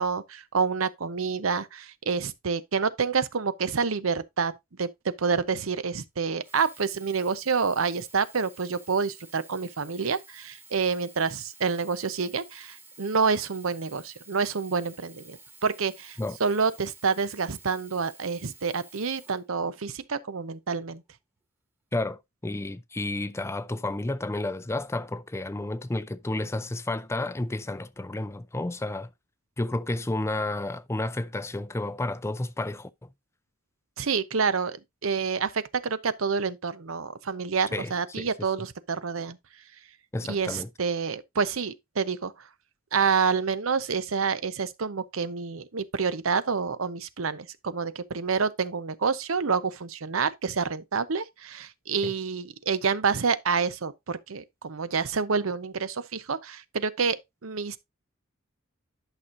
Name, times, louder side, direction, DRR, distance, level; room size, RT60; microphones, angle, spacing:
voice 1, 0.0-4.5 4.8-21.0 34.0-39.4 40.3-42.3 42.9-57.2 57.4-57.8, right 5 dB, 80° right, 0.8 m, -28 dB
Sink (filling or washing), 6.3-20.1 20.8-20.9, right 2 dB, 10° right, 1.6 m, -52 dB
voice 2, 21.9-29.1 29.6-33.1 37.7-38.3 40.1-40.7 52.0-52.1, left 2 dB, 15° left, 0.4 m, -31 dB
11.5 x 6.2 x 2.6 m
head